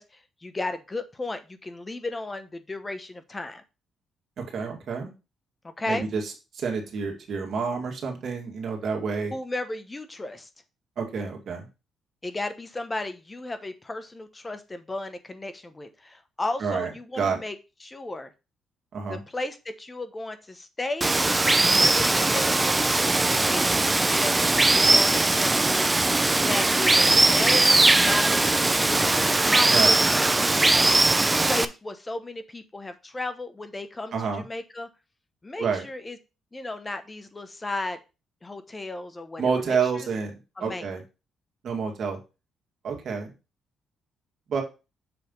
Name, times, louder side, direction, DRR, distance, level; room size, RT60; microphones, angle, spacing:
voice 1, 0.0-3.6 5.6-6.1 9.3-10.5 12.2-18.3 19.1-21.1 21.6-30.3 31.3-34.9 35.4-36.2 36.5-38.0 38.4-40.1 40.6-40.9, left 2 dB, 20° left, 10 dB, 0.9 m, -34 dB
voice 2, 4.5-5.1 5.9-6.2 6.5-9.3 11.0-11.7 16.6-16.9 17.2-17.4 18.9-19.2 29.7-30.0 34.1-34.4 35.6-35.9 39.4-40.3 40.6-41.0 41.6-42.2 42.8-43.3 44.5-44.6, right 5 dB, 60° right, 2 dB, 2.1 m, -28 dB
Water, 21.0-31.7, right 2 dB, 15° right, 0.5 m, -20 dB
7.0 x 3.3 x 5.3 m, 0.29 s
cardioid pair, 90°, 0 cm